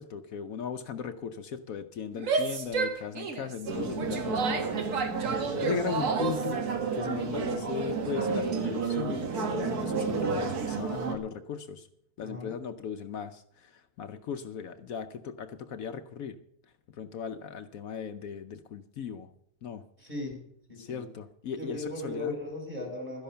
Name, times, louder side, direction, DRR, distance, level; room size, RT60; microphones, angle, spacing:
voice 1, 0.0-6.6 6.9-11.9 12.2-16.4 17.0-19.3 19.6-19.8 20.8-22.4, left 7 dB, 70° left, 8 dB, 1.1 m, -37 dB
Female speech woman speaking / Yell, 2.1-6.5, right 4 dB, 60° right, 1.5 m, -31 dB
sound 1, 3.7-11.2, right 5 dB, 90° right, 1.9 m, -31 dB
voice 2, 5.2-5.8 10.9-11.1 12.2-12.5 20.0-20.4 20.7-21.0 21.5-23.2, left 2 dB, 30° right, 0 dB, 4.5 m, -38 dB
12.5 x 10.5 x 5.7 m, 0.71 s
omnidirectional pair, 1.6 m